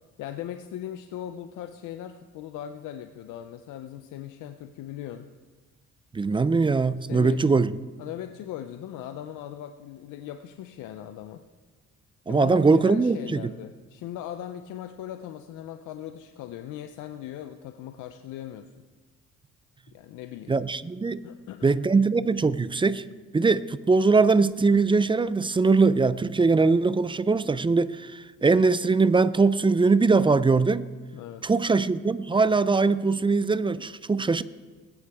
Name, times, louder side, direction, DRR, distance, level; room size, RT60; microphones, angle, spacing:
voice 1, 0.2-5.3 7.0-7.4 8.0-11.4 12.3-18.7 19.9-20.6 21.2-21.8 31.1-31.5, left 11 dB, 90° left, 8 dB, 0.6 m, -39 dB
voice 2, 6.1-7.8 12.3-13.5 20.5-21.2 21.6-23.0 23.3-30.9 31.4-34.4, right 4 dB, 15° right, 16 dB, 0.4 m, -21 dB
19.5 x 9.7 x 3.5 m, 1.3 s
cardioid pair, 90°, 30 cm